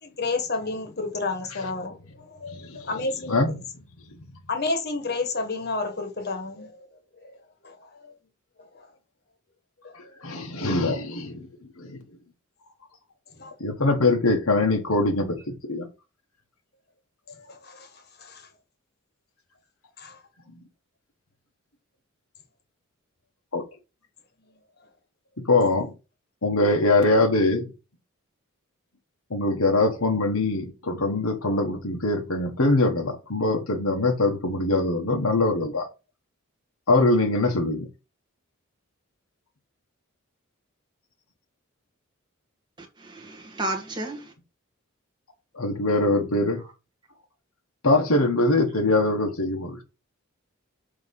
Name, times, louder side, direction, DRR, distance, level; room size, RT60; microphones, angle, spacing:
voice 1, 0.0-3.4 4.5-6.8 7.2-7.4 7.6-8.1 8.6-8.9 9.8-9.9 13.3-13.5 17.3-18.5 20.0-20.2, left 3 dB, 50° left, 1.5 m, -31 dB
voice 2, 2.5-2.9 3.3-3.6 9.9-11.5 11.8-12.0 13.6-15.9 23.5-23.6 25.4-25.9 26.4-27.7 29.3-35.9 36.9-37.9 45.5-46.6 47.8-49.8, left 2 dB, 85° left, 1.5 m, -23 dB
voice 3, 42.8-44.3, right 2 dB, 20° right, 1.5 m, -33 dB
6.9 x 3.2 x 5.4 m
head